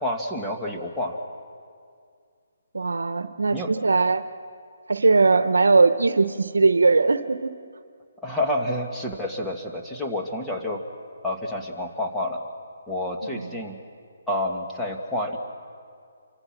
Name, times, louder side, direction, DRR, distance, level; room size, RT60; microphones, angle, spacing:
voice 1, 0.0-1.2 3.5-3.7 8.2-10.8 11.2-12.4 12.9-13.8 14.3-15.4, left 1 dB, 5° left, -2 dB, 1.8 m, -29 dB
voice 2, 2.7-4.2 4.9-7.5 13.3-13.5, right 3 dB, 90° right, 11 dB, 0.9 m, -20 dB
28.0 x 24.5 x 6.1 m, 2.2 s
hypercardioid pair, 160°, 0 cm